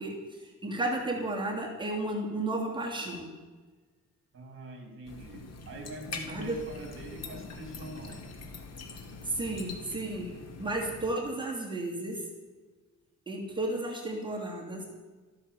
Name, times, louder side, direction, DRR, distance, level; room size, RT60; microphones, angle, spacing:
voice 1, 0.0-3.3 6.3-6.6 9.2-12.3 13.3-14.8, right 2 dB, 15° right, -2 dB, 2.7 m, -33 dB
voice 2, 4.3-8.3, right 1 dB, 45° right, 4 dB, 3.4 m, -44 dB
sound 1, 5.1-11.1, left 3 dB, 60° left, 2.2 m, -44 dB
13.0 x 13.0 x 7.1 m, 1.3 s
wide cardioid pair, 165°, 29 cm